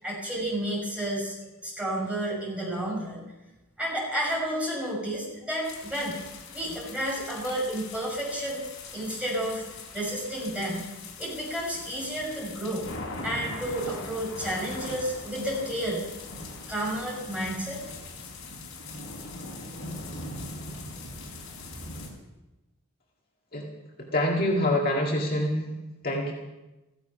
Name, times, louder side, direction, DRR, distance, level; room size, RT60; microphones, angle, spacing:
voice 1, 0.0-1.3 1.6-3.3 3.8-6.2 6.5-8.6 8.9-9.6 9.9-10.8 11.2-13.0 13.2-16.1 16.4-17.8, right 1 dB, 5° right, -4 dB, 6.1 m, -31 dB
sound 1, 5.6-22.1, left 2 dB, 70° left, 4.4 m, -41 dB
voice 2, 24.0-25.6 26.0-26.3, left 1 dB, 40° left, -1 dB, 2.0 m, -25 dB
15.5 x 15.0 x 5.8 m, 1.0 s
head